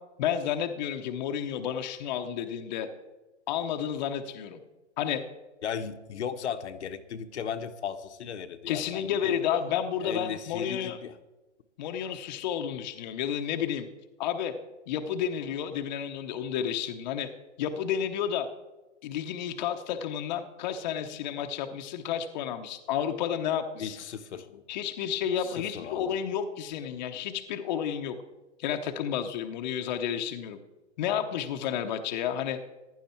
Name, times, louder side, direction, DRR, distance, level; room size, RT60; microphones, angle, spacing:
voice 1, 0.2-2.9 3.5-4.6 5.0-5.2 8.7-11.0 11.8-13.9 14.2-14.5 14.9-17.3 17.6-18.5 19.0-24.0 24.7-28.2 28.6-30.6 31.0-32.6, left 9 dB, 35° left, 0.9 m, -31 dB
voice 2, 5.6-9.3 10.0-11.2 23.8-24.6 25.4-26.2, left 8 dB, 65° left, 1.1 m, -36 dB
15.0 x 11.5 x 4.5 m
hypercardioid pair, 150°, 36 cm